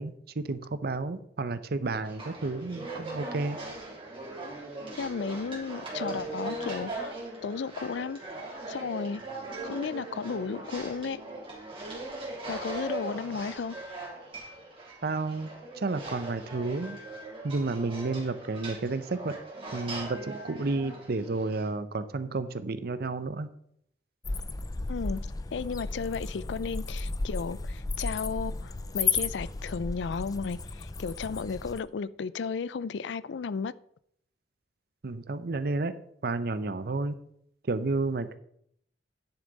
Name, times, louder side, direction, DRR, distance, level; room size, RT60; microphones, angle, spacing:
voice 1, 0.0-3.6 15.0-15.5 15.8-17.0 17.4-19.3 19.7-23.5 35.0-35.9 36.2-37.1 37.7-38.4, right 3 dB, 60° right, 0.7 m, -31 dB
sound 1, 2.0-21.7, right 2 dB, 30° right, 3.1 m, -40 dB
voice 2, 5.0-7.1 7.4-8.2 8.7-9.2 9.6-11.2 12.5-13.8 24.9-25.2 25.5-33.7, left 5 dB, 75° left, 0.4 m, -34 dB
sound 2, 24.2-31.8, left 4 dB, 20° left, 0.5 m, -33 dB
9.8 x 7.2 x 4.0 m
head